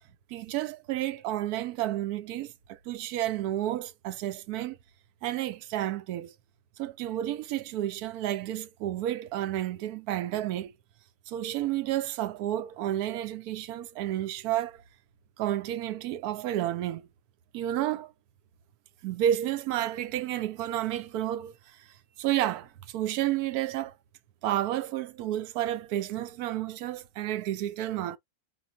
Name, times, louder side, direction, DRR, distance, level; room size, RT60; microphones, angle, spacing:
voice 1, 0.3-4.8 5.2-6.3 6.8-10.7 11.3-14.8 15.4-17.0 17.5-18.1 19.0-21.8 22.2-23.9 24.4-28.2, right 13 dB, 85° right, 1.1 m, -31 dB
4.9 x 2.1 x 3.7 m
omnidirectional pair, 1.6 m